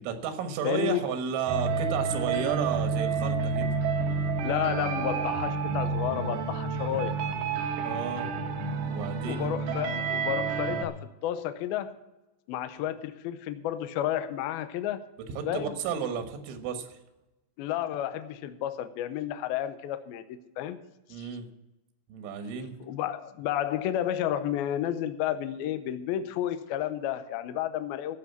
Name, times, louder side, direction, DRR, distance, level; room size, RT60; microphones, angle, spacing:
voice 1, 0.1-3.7 4.7-4.8 7.8-8.3 8.9-9.5 15.4-17.0 21.1-21.5 22.1-22.7, right 7 dB, 90° right, 7 dB, 3.8 m, -32 dB
voice 2, 0.6-1.0 4.4-7.2 9.2-12.0 12.5-15.1 15.4-15.8 17.6-20.8 21.2-21.3 22.8-28.2, left 11 dB, 90° left, 11 dB, 2.1 m, -31 dB
sound 1, 1.5-10.8, right 4 dB, 70° right, 2.8 m, -29 dB
14.5 x 6.1 x 8.2 m, 1.0 s
omnidirectional pair, 5.3 m